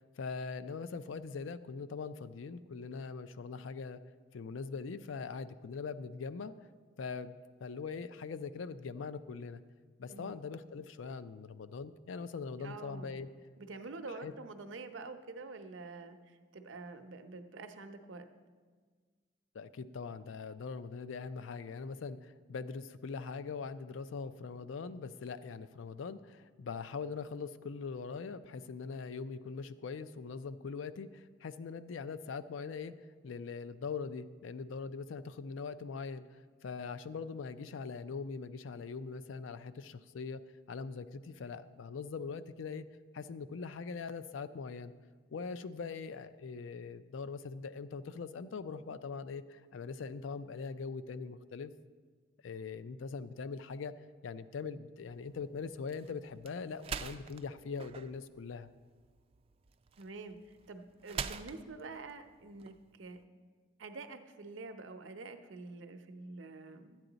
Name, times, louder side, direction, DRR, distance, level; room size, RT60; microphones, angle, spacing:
voice 1, 0.0-4.0 4.3-6.5 7.0-9.6 10.0-13.3 14.2-14.3 19.5-32.9 33.2-40.4 40.7-42.9 43.1-44.9 45.3-51.7 52.4-53.9 54.2-58.7, left 5 dB, 80° left, 13 dB, 0.4 m, -42 dB
voice 2, 12.6-13.2 13.6-18.3 60.0-63.2 63.8-67.0, right 3 dB, 75° right, 7 dB, 0.7 m, -47 dB
sound 1, 55.0-63.2, right 6 dB, 30° right, 0.3 m, -46 dB
12.5 x 9.0 x 3.9 m, 1.5 s
head